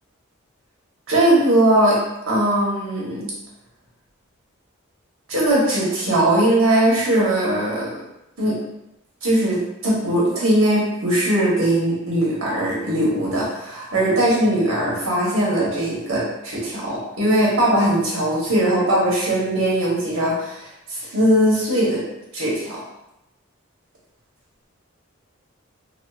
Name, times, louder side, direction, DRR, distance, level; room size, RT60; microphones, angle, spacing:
voice 1, 1.1-2.0 2.3-3.3 5.3-7.9 8.4-8.6 9.2-9.6 9.8-22.0 22.3-22.8, right 1 dB, 80° right, -5 dB, 1.1 m, -20 dB
3.4 x 2.0 x 2.4 m, 0.88 s
head